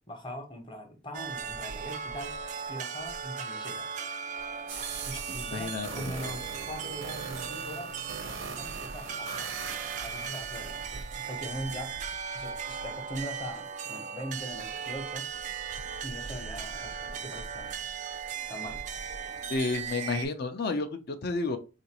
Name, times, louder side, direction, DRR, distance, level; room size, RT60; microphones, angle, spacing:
voice 1, 0.1-2.4 2.7-3.9 4.7-8.0 8.5-9.5 10.0-11.9 12.3-15.3 15.8-17.9 18.5-18.8, equal, 25° left, 0.8 m, -41 dB
sound 1, 1.1-20.3, right 6 dB, 40° right, 0.3 m, -37 dB
sound 2, 4.7-11.7, right 5 dB, 90° right, 0.7 m, -41 dB
voice 2, 5.5-6.1 19.5-21.6, left 3 dB, 50° left, 0.4 m, -31 dB
3.8 x 2.5 x 2.8 m
head